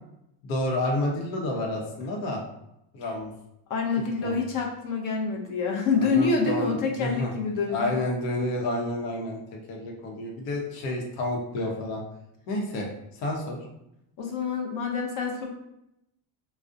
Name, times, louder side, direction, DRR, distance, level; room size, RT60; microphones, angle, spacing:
voice 1, 0.4-2.4 2.9-3.3 4.2-4.4 6.0-7.3 7.7-9.4 9.7-12.0 12.5-12.9 13.1-13.6, left 1 dB, 80° left, -1 dB, 0.8 m, -30 dB
voice 2, 3.7-7.9 14.2-15.5, left 4 dB, 45° left, 1 dB, 0.5 m, -27 dB
2.4 x 2.1 x 2.5 m, 0.83 s
cardioid pair, 100°, 46 cm